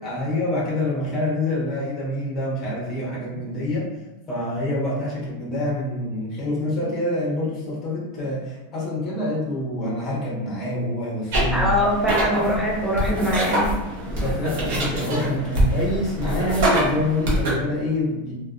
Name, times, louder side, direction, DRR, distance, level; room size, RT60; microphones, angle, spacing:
voice 1, 0.0-3.9 4.3-11.7 14.1-18.3, left 1 dB, 20° left, -6 dB, 0.7 m, -26 dB
sound 1, 11.3-17.5, right 1 dB, 50° right, 0.6 m, -25 dB
voice 2, 11.5-13.7, equal, ahead, -4 dB, 0.3 m, -22 dB
2.5 x 2.1 x 2.4 m, 1.0 s
supercardioid pair, 180°, 0 cm